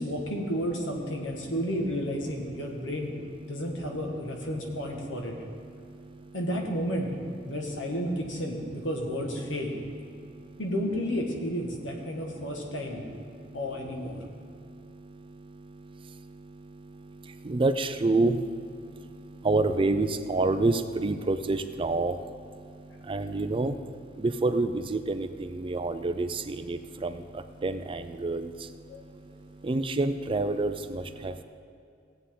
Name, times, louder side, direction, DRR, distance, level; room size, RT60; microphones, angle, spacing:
voice 1, 0.0-3.1 3.5-5.3 6.3-7.1 7.5-9.7 10.6-13.0 13.5-14.2 28.9-29.0, equal, 80° left, 1 dB, 1.6 m, -32 dB
voice 2, 2.5-2.9 3.5-3.9 5.1-6.4 10.1-10.6 12.3-12.7 13.1-13.6 14.0-31.4, right 2 dB, 30° right, 9 dB, 0.4 m, -30 dB
17.5 x 8.2 x 3.8 m, 2.4 s
head